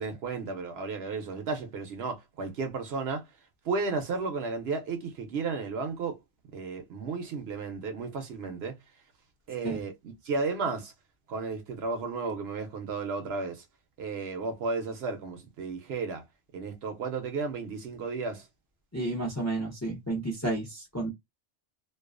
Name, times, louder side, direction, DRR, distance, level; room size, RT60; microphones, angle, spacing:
voice 1, 0.0-3.2 3.7-6.2 6.5-8.7 9.5-10.9 11.3-13.6 14.0-16.2 16.5-18.4, right 4 dB, 65° right, 0.7 m, -33 dB
voice 2, 18.9-21.1, right 2 dB, 20° left, 0.5 m, -31 dB
2.3 x 2.3 x 2.3 m
omnidirectional pair, 1.3 m